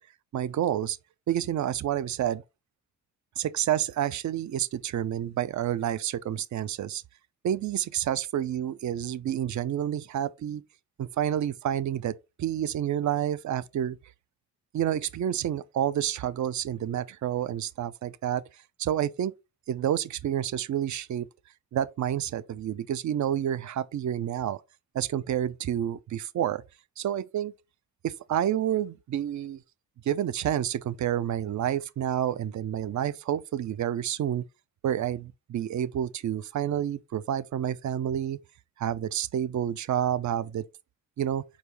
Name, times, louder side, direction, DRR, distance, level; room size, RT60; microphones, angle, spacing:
voice 1, 0.3-1.0 1.3-2.4 3.4-7.0 7.4-10.6 11.0-14.0 14.7-18.4 18.8-19.3 19.7-21.3 21.7-24.6 24.9-26.6 27.0-27.5 28.0-29.6 30.1-34.5 34.8-38.4 38.8-40.6 41.2-41.4, right 10 dB, 50° right, 0.5 m, -29 dB
4.5 x 2.8 x 3.3 m
supercardioid pair, 45°, 39 cm